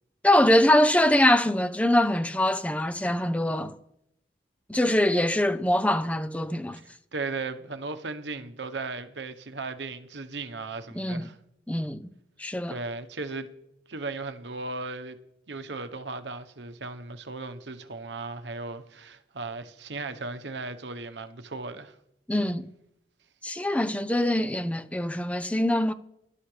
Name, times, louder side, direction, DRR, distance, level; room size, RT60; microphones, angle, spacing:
voice 1, 0.2-3.7 4.7-6.8 11.0-11.2 11.7-12.0 12.4-12.7 22.3-22.7 23.4-25.9, left 1 dB, 10° left, 0.6 m, -23 dB
voice 2, 6.7-11.4 12.7-13.5 13.9-15.2 15.5-22.0, right 3 dB, 85° right, 1.1 m, -36 dB
22.0 x 12.0 x 3.4 m
head